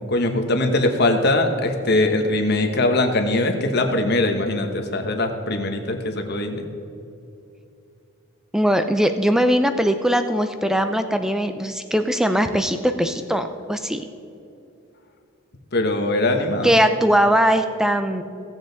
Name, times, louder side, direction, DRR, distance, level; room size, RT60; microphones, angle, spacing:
voice 1, 0.1-6.6 15.7-16.7, left 2 dB, 50° left, 5 dB, 1.1 m, -21 dB
voice 2, 8.5-14.1 16.6-18.2, equal, ahead, 8 dB, 0.4 m, -20 dB
17.0 x 7.3 x 4.0 m, 2.7 s
head